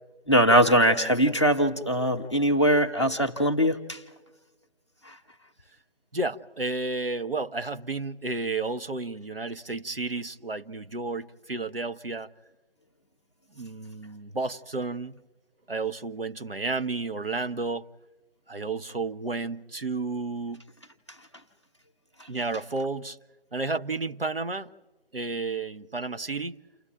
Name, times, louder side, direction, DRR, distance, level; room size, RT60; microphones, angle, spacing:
voice 1, 0.3-4.0 5.1-5.2, equal, 25° left, 1.0 m, -21 dB
voice 2, 6.1-12.3 13.6-15.2 15.7-17.9 18.5-20.6 22.3-23.2 23.5-24.7 25.1-26.6, right 3 dB, 60° right, 0.9 m, -32 dB
29.5 x 28.5 x 3.4 m
figure-of-eight pair, 170°, 33 cm